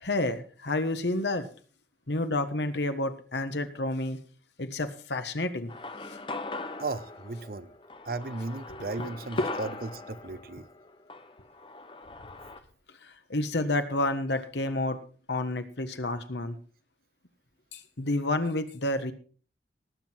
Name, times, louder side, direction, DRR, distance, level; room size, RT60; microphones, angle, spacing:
voice 1, 0.0-1.5 2.1-4.2 4.6-5.7 6.0-6.2 8.7-9.1 13.0-15.0 15.3-16.6 17.7-19.1, left 2 dB, 80° left, 9 dB, 1.5 m, -30 dB
sound 1, 5.7-12.6, left 3 dB, 30° left, 1.0 m, -40 dB
voice 2, 6.8-7.7 8.1-10.6, right 3 dB, 55° right, 14 dB, 0.8 m, -35 dB
18.5 x 7.8 x 4.5 m, 0.42 s
head